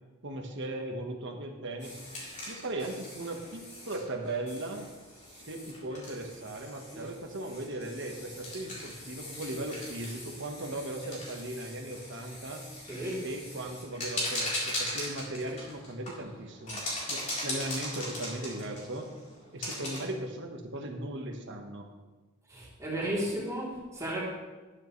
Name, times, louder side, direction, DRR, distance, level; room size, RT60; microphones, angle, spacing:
voice 1, 0.2-2.0 2.5-4.9 5.3-12.6 13.2-19.1 19.5-21.9, right 1 dB, 60° right, 3 dB, 1.4 m, -38 dB
sound 1, 1.8-20.0, left 1 dB, 35° left, 4.0 m, -40 dB
voice 2, 12.8-13.3 22.5-24.2, right 1 dB, 15° right, -6 dB, 3.4 m, -34 dB
12.0 x 10.5 x 3.3 m, 1.2 s
head